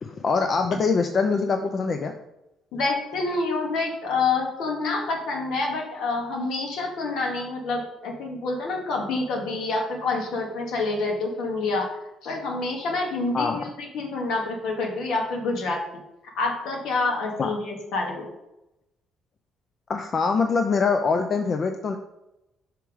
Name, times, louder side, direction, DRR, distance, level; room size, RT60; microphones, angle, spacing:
voice 1, 0.0-2.1 13.3-13.6 17.4-17.5 19.9-22.0, left 4 dB, 40° left, 6 dB, 0.5 m, -23 dB
voice 2, 2.7-11.9 12.2-15.8 16.4-18.3, left 3 dB, 75° left, 1 dB, 1.7 m, -27 dB
5.4 x 4.5 x 4.8 m, 0.90 s
cardioid pair, 105°, 0 cm